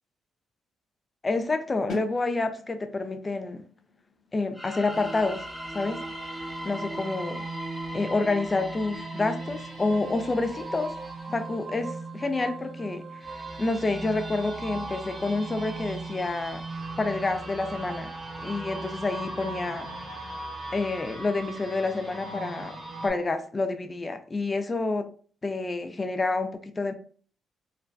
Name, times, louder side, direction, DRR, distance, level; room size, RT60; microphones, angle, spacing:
voice 1, 1.2-3.6 4.3-5.4 5.7-6.0 6.6-7.4 7.9-10.9 11.3-16.6 17.0-18.1 18.4-19.9 20.7-22.8 23.0-25.1 25.4-26.9, left 3 dB, 30° left, 0.4 m, -28 dB
sound 1, 1.9-7.6, left 4 dB, 60° left, 0.7 m, -46 dB
sound 2, 4.5-11.2, equal, ahead, 0.7 m, -41 dB
sound 3, 4.9-23.1, right 2 dB, 40° right, 0.6 m, -38 dB
2.5 x 2.1 x 2.3 m
hypercardioid pair, 45°, 0 cm